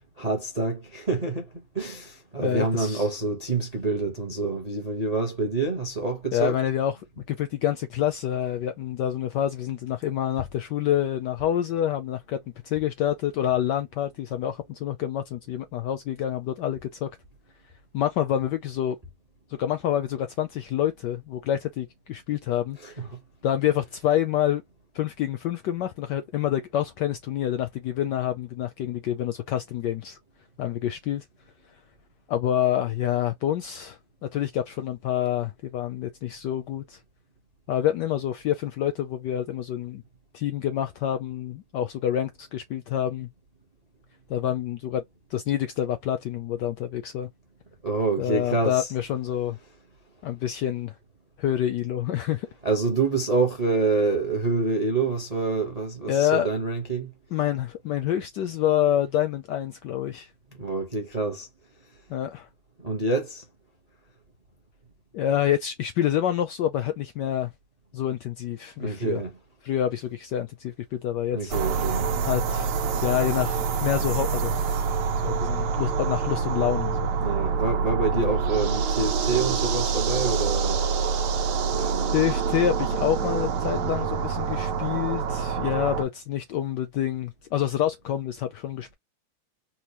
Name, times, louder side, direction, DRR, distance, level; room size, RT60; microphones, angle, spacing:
voice 1, 0.2-6.6 22.8-23.1 47.8-48.9 52.6-57.1 60.6-61.5 62.8-63.4 68.8-69.4 71.3-72.1 77.2-80.8 81.7-82.2, right 3 dB, 35° right, 0.6 m, -27 dB
voice 2, 2.4-3.1 6.3-7.0 7.3-17.1 17.9-19.0 19.5-23.0 23.4-24.6 24.9-30.2 30.6-31.2 32.3-37.0 37.7-40.0 40.3-43.3 44.3-45.0 45.3-47.3 48.2-49.6 50.2-51.0 51.4-52.5 56.1-56.5 57.3-60.3 62.1-62.5 65.1-67.5 67.9-69.2 69.6-71.5 72.3-72.7 73.0-74.6 75.2-77.1 78.1-78.3 82.1-88.9, left 11 dB, 75° left, 1.0 m, -27 dB
sound 1, 71.5-86.1, right 5 dB, 90° right, 1.6 m, -26 dB
4.3 x 2.1 x 2.8 m
omnidirectional pair, 2.3 m